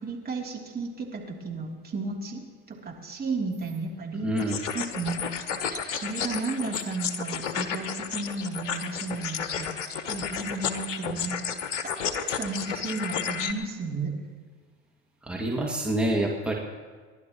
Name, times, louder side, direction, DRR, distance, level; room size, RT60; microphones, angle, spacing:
voice 1, 0.0-2.4 2.7-4.4 4.7-5.3 5.7-11.4 11.8-14.2, right 3 dB, 25° right, -1 dB, 3.2 m, -33 dB
voice 2, 4.2-4.6 15.2-16.5, right 1 dB, 5° right, -2 dB, 2.2 m, -27 dB
sound 1, 4.4-13.5, left 7 dB, 80° left, 1.1 m, -32 dB
29.5 x 11.5 x 3.1 m, 1.5 s
hypercardioid pair, 65°, 37 cm